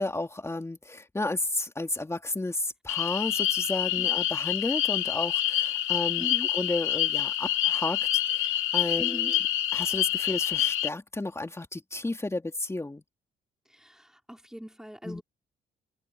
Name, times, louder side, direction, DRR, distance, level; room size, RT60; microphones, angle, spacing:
voice 1, 0.0-6.3 6.5-8.5 8.7-9.3 9.7-13.0 15.0-15.2, left 2 dB, 15° left, 2.6 m, -32 dB
sound 1, 2.9-10.9, left 12 dB, 85° left, 2.1 m, -27 dB
voice 2, 9.0-9.3 13.7-15.2, equal, 5° right, 3.6 m, -41 dB
open air
cardioid pair, 90°, 20 cm